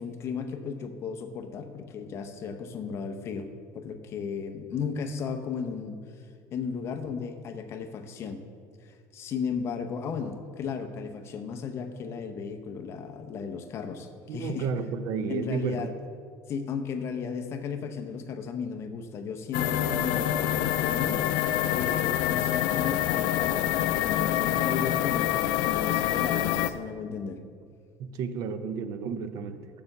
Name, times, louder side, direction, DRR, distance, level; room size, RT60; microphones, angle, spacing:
voice 1, 0.0-3.5 3.7-8.4 8.8-14.7 15.3-15.9 16.5-21.2 21.7-27.4, left 6 dB, 40° left, 6 dB, 0.7 m, -35 dB
voice 2, 14.3-15.9 28.0-29.7, right 6 dB, 55° right, 11 dB, 0.6 m, -32 dB
sound 1, 19.5-26.7, left 12 dB, 80° left, 0.4 m, -26 dB
6.9 x 6.5 x 7.2 m, 2.1 s
cardioid pair, 160°, 7 cm